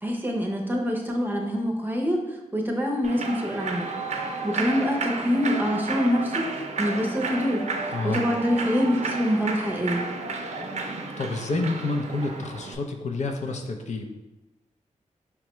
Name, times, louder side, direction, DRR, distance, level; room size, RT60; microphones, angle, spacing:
voice 1, 0.0-2.2 2.5-3.9 4.4-6.5 6.8-7.7 8.0-10.0, equal, 15° right, 1 dB, 0.6 m, -25 dB
Human voice / Clapping / Cheering, 3.0-12.7, right 3 dB, 60° right, 0.5 m, -32 dB
voice 2, 7.9-8.2 11.2-14.2, left 3 dB, 65° left, 4 dB, 0.5 m, -29 dB
5.5 x 2.2 x 3.0 m, 1.0 s
wide cardioid pair, 85°, 13 cm